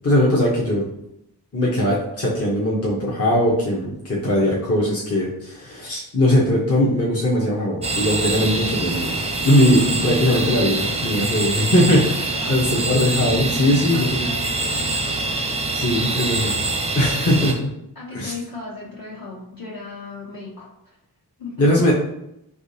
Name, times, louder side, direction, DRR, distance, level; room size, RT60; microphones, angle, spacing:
voice 1, 0.0-0.9 1.5-9.2 9.4-14.3 15.7-16.5 16.9-17.7 18.1-18.3 21.6-21.9, left 1 dB, 35° left, -5 dB, 0.8 m, -20 dB
sound 1, 7.8-17.5, right 2 dB, 15° right, 0.5 m, -24 dB
voice 2, 12.4-15.5 17.9-21.0 21.4-21.9, left 3 dB, 55° left, -6 dB, 1.4 m, -37 dB
3.6 x 2.9 x 2.7 m, 0.81 s
cardioid pair, 50°, 41 cm